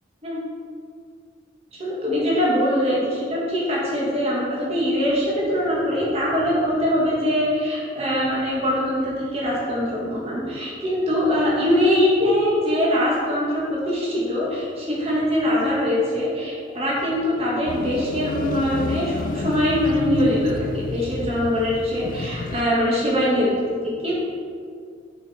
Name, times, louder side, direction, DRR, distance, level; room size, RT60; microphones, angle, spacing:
voice 1, 1.7-23.5 23.8-24.1, equal, 30° right, -6 dB, 2.0 m, -22 dB
sound 1, 17.7-22.7, left 3 dB, 45° left, 0.3 m, -30 dB
9.4 x 5.3 x 4.4 m, 2.2 s
head